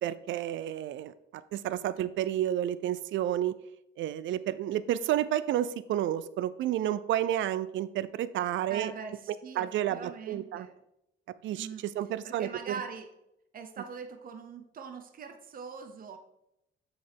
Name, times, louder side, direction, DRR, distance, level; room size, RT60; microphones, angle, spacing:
voice 1, 0.0-3.5 4.0-8.9 9.6-10.7 11.4-12.5, right 12 dB, 70° right, 16 dB, 0.5 m, -31 dB
voice 2, 8.7-10.7 11.5-11.9 12.2-13.1 13.5-16.2, right 6 dB, 45° right, 7 dB, 0.8 m, -42 dB
7.7 x 6.3 x 3.5 m, 0.82 s
cardioid pair, 90°, 20 cm